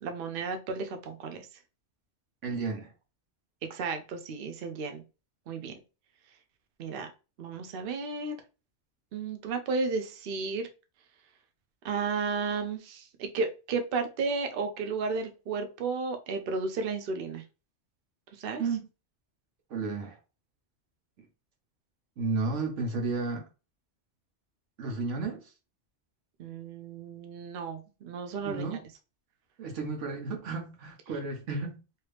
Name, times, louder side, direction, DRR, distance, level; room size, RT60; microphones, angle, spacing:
voice 1, 0.0-1.5 3.7-5.0 5.5-5.7 6.8-7.1 7.4-8.4 9.1-10.7 11.8-17.4 18.4-18.6 26.4-28.7, right 4 dB, 60° right, 0.7 m, -33 dB
voice 2, 2.4-2.9 18.6-18.8 19.7-20.2 22.2-23.4 24.8-25.5 28.4-28.8 29.6-31.8, right 3 dB, 90° right, 1.2 m, -32 dB
2.9 x 2.7 x 3.3 m
omnidirectional pair, 1.2 m